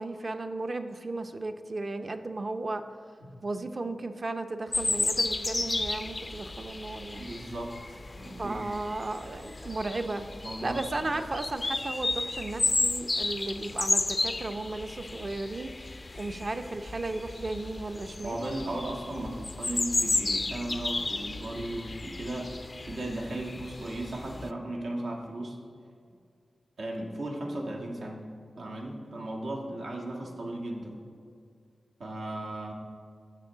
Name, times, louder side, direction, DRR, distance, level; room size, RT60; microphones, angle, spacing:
voice 1, 0.0-2.8 3.4-7.3 8.4-10.3 10.6-15.7 16.1-18.5, right 2 dB, 45° right, 8 dB, 0.6 m, -35 dB
sound 1, 4.7-24.5, left 2 dB, 35° left, 0.3 m, -33 dB
voice 2, 7.2-8.6 10.4-11.1 18.2-22.5 22.8-25.6 26.8-28.3 28.6-31.0 32.0-32.7, right 1 dB, 90° right, -1 dB, 1.6 m, -36 dB
16.0 x 6.1 x 3.8 m, 2.3 s
wide cardioid pair, 90°, 0 cm